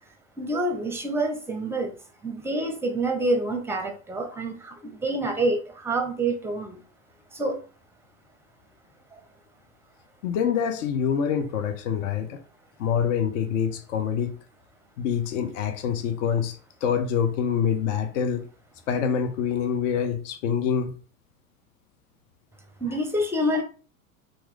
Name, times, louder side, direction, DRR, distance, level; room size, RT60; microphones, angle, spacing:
voice 1, 0.4-2.0 2.2-6.8 7.3-7.6 9.1-9.2 22.8-23.6, right 1 dB, 5° right, 0.6 m, -27 dB
voice 2, 10.2-12.4 12.8-14.3 15.0-18.4 18.9-20.9, left 7 dB, 60° left, 0.7 m, -26 dB
2.9 x 2.6 x 3.7 m
hypercardioid pair, 90°, 43 cm